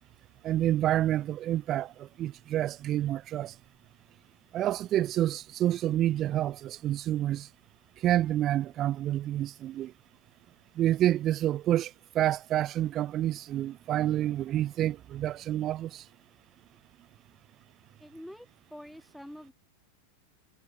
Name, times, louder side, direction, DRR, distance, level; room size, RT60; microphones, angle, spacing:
voice 1, 0.4-3.5 4.5-7.5 8.0-9.9 10.8-16.0, right 13 dB, 30° right, 1.0 m, -28 dB
voice 2, 18.0-19.5, equal, ahead, 7.3 m, -46 dB
figure-of-eight pair, 90°, 0 cm